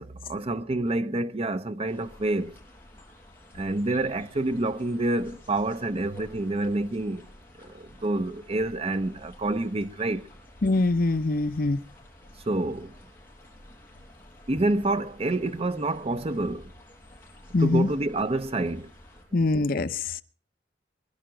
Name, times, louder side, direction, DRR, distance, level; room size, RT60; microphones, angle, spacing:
voice 1, 0.0-2.6 3.5-7.2 7.6-10.3 12.5-13.0 14.5-16.7 17.6-18.9 19.3-19.4, right 2 dB, 35° right, 0.7 m, -28 dB
sound 1, 1.9-19.2, left 1 dB, 10° left, 6.4 m, -51 dB
voice 2, 10.6-11.8 17.5-17.9 19.3-20.2, left 2 dB, 55° left, 0.8 m, -23 dB
23.0 x 11.5 x 5.1 m
head